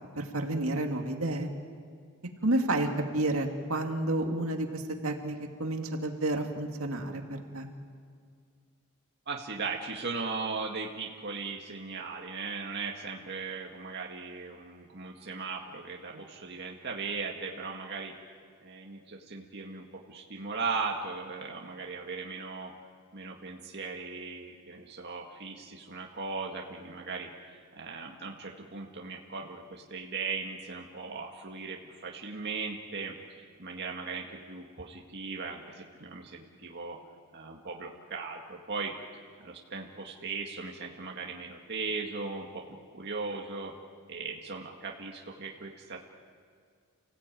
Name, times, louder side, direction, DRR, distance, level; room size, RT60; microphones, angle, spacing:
voice 1, 0.2-1.5 2.4-7.7, right 1 dB, 70° right, 3 dB, 2.4 m, -30 dB
voice 2, 9.3-18.1 18.6-22.7 23.1-37.0 37.3-38.9 39.4-43.7 44.1-46.0, right 4 dB, 50° right, -1 dB, 2.0 m, -38 dB
30.0 x 17.0 x 9.2 m, 2.2 s
head